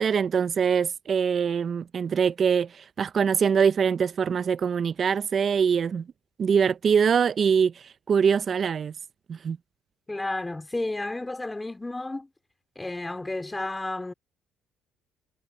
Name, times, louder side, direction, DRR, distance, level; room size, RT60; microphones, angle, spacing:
voice 1, 0.0-6.1 6.4-8.9 9.3-9.6, right 6 dB, 40° right, 0.7 m, -23 dB
voice 2, 10.1-12.3 12.8-14.1, left 2 dB, 15° left, 4.1 m, -32 dB
cardioid pair, 100°, 0 cm